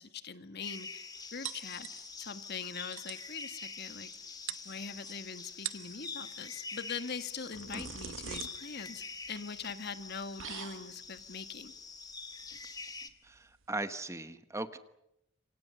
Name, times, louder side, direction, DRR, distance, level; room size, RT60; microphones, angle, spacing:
voice 1, 0.0-1.9 2.2-4.1 4.6-11.7, left 5 dB, 55° left, 10 dB, 1.6 m, -42 dB
sound 1, 0.6-13.1, left 4 dB, 20° left, 1.8 m, -46 dB
sound 2, 1.4-2.3 2.6-2.7 2.9-3.3 4.1-4.2 4.5-5.1 5.5-6.0 7.2-13.8, right 9 dB, 80° right, 1.1 m, -45 dB
voice 2, 13.2-14.8, right 2 dB, 15° right, 11 dB, 1.1 m, -38 dB
28.0 x 26.0 x 6.9 m, 0.82 s
head